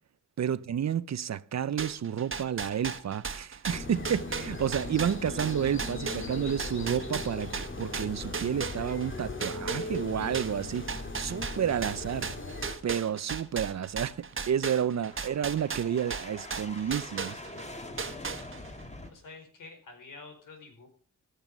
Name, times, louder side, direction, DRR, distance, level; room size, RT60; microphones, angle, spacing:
voice 1, 0.4-12.3 12.8-17.4, right 9 dB, 60° right, 0.7 m, -30 dB
sound 1, 1.8-9.1 9.4-17.7 18.0-18.8, right 5 dB, 40° right, 1.4 m, -36 dB
sound 2, 3.7-12.8, left 3 dB, 40° left, 2.7 m, -38 dB
sound 3, 12.8-19.1, left 1 dB, 20° left, 2.5 m, -46 dB
voice 2, 19.1-20.9, left 3 dB, 90° left, 4.6 m, -48 dB
15.0 x 12.5 x 5.3 m
wide cardioid pair, 110°, 31 cm